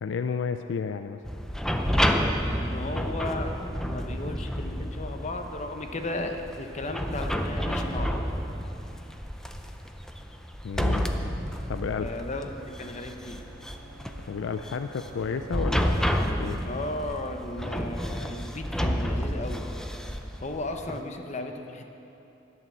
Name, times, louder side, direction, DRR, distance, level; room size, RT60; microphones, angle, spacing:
voice 1, 0.0-1.2 10.6-11.3 11.7-12.1 14.3-16.6, left 6 dB, 75° left, 9 dB, 0.4 m, -32 dB
sound 1, 1.2-21.0, equal, 5° left, 0.5 m, -30 dB
voice 2, 2.4-3.6 3.8-8.3 12.0-13.4 16.6-19.6 20.4-21.8, left 2 dB, 40° left, 5 dB, 0.9 m, -35 dB
sound 2, 12.9-16.5, right 4 dB, 90° right, 1.1 m, -50 dB
11.0 x 8.5 x 7.2 m, 3.0 s
head